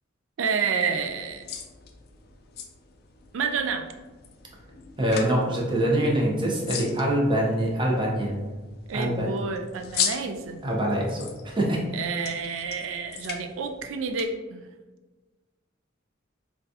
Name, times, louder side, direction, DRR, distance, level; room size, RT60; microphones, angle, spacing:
voice 1, 0.4-1.5 3.3-3.9 8.9-10.6 11.9-14.6, right 5 dB, 75° right, 5 dB, 0.3 m, -29 dB
Shit and Tinkle, 0.9-14.2, left 7 dB, 55° left, 0.4 m, -38 dB
voice 2, 5.0-8.5 8.9-9.4 10.6-11.8, right 1 dB, 25° right, -2 dB, 0.7 m, -24 dB
3.9 x 2.3 x 2.7 m, 1.2 s
head